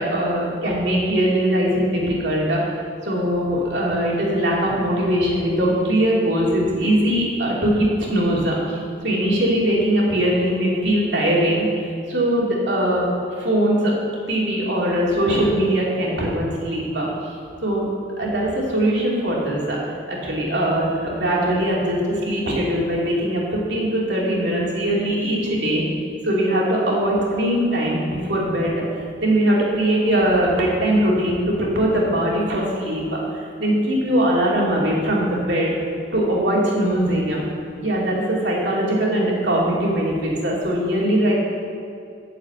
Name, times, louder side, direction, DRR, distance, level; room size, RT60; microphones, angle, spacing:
voice 1, 0.0-2.6 3.0-11.7 12.1-13.1 13.4-13.9 14.3-17.3 17.6-17.9 18.2-25.8 26.2-33.0 33.3-35.7 36.1-37.4 37.8-41.3, right 1 dB, 65° right, -4 dB, 2.7 m, -21 dB
8.7 x 7.1 x 7.9 m, 2.5 s
head